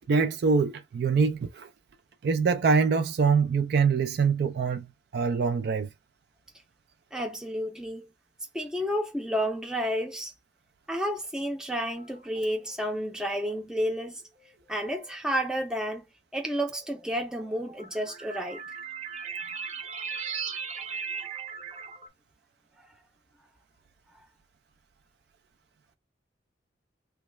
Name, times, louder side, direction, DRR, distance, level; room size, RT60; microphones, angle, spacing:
voice 1, 0.1-1.7 2.2-4.9 5.1-5.9, right 5 dB, 60° right, 0.3 m, -24 dB
voice 2, 7.1-8.1 8.5-10.3 10.9-14.2 14.7-16.0 16.3-18.6 24.1-24.3, equal, 5° right, 0.5 m, -31 dB
sound 1, 12.0-12.6 13.5-13.6 14.8-14.9 17.0-22.1, right 6 dB, 40° right, 0.7 m, -38 dB
3.0 x 2.3 x 3.1 m
head